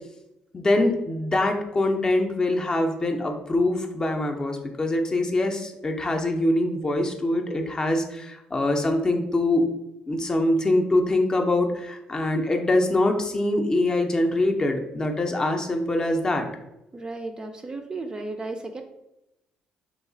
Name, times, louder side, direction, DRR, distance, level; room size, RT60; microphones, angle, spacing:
voice 1, 0.5-9.6 10.1-16.5, left 1 dB, 25° left, 3 dB, 0.5 m, -24 dB
voice 2, 16.9-18.8, right 2 dB, 25° right, 5 dB, 0.4 m, -34 dB
3.0 x 2.3 x 3.8 m, 0.87 s
cardioid pair, 95°, 3 cm